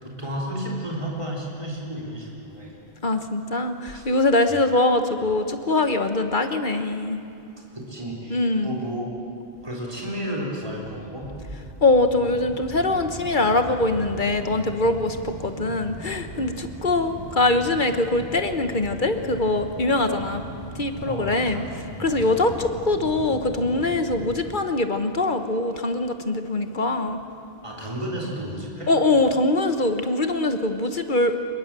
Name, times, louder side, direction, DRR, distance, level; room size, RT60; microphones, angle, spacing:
voice 1, 0.0-2.7 3.9-4.1 7.7-9.1 9.6-11.3 21.1-21.7 22.1-22.4 27.6-28.9, equal, 30° right, -3 dB, 3.9 m, -32 dB
voice 2, 3.0-7.2 8.3-8.8 11.8-20.4 20.7-21.6 22.0-27.2 28.9-31.4, left 2 dB, 50° left, 7 dB, 1.4 m, -23 dB
sound 1, 10.7-24.4, right 1 dB, 15° left, 7.1 m, -39 dB
25.0 x 21.5 x 7.6 m, 2.7 s
omnidirectional pair, 1.1 m